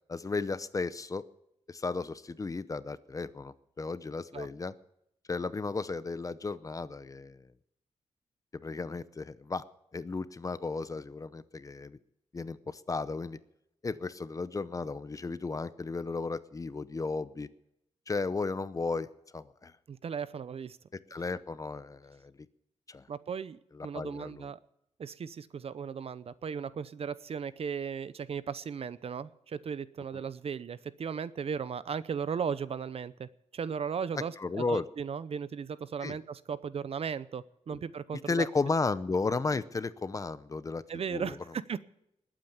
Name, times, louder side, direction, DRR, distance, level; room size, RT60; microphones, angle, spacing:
voice 1, 0.1-1.2 1.7-4.7 5.3-7.4 8.6-9.6 9.9-12.0 12.3-13.4 13.8-17.5 18.1-19.1 19.3-19.7 21.1-22.3 22.9-23.1 23.7-24.5 34.4-34.9 36.0-36.2 37.7-37.8 38.3-40.8 41.1-41.4, left 4 dB, 25° left, 15 dB, 0.7 m, -34 dB
voice 2, 19.9-20.8 23.1-24.6 25.0-38.5 40.9-41.8, right 6 dB, 55° right, 17 dB, 0.7 m, -36 dB
20.0 x 8.9 x 7.1 m, 0.79 s
wide cardioid pair, 145°, 12 cm